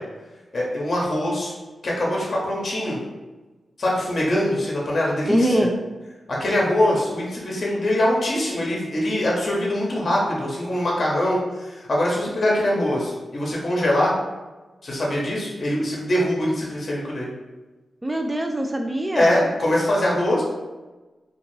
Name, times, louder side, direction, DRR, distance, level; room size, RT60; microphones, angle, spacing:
voice 1, 0.5-1.5 1.8-3.0 3.8-5.5 6.3-14.1 14.8-17.3 19.1-20.4, left 1 dB, 55° left, -4 dB, 0.7 m, -23 dB
voice 2, 5.3-5.8 18.0-19.5, equal, 15° right, 3 dB, 0.3 m, -23 dB
2.5 x 2.3 x 3.1 m, 1.2 s
cardioid pair, 60°, 0 cm